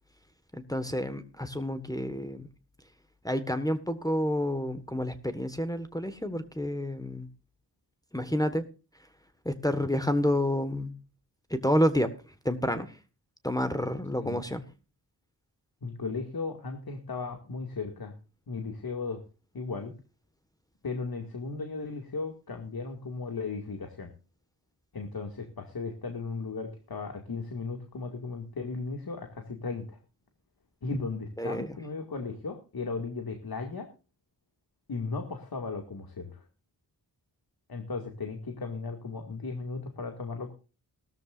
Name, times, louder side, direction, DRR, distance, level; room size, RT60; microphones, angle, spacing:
voice 1, 0.5-2.5 3.2-7.3 8.1-8.6 9.4-10.9 11.5-12.1 12.4-13.0 13.4-14.6 31.4-31.8, equal, 10° left, 8 dB, 1.5 m, -29 dB
voice 2, 15.8-18.1 18.5-19.2 19.5-19.9 20.8-24.1 24.9-30.0 30.8-33.9 34.9-36.5 37.7-40.5, left 4 dB, 60° left, 4 dB, 2.3 m, -36 dB
18.5 x 13.5 x 2.5 m, 0.33 s
wide cardioid pair, 85°, 41 cm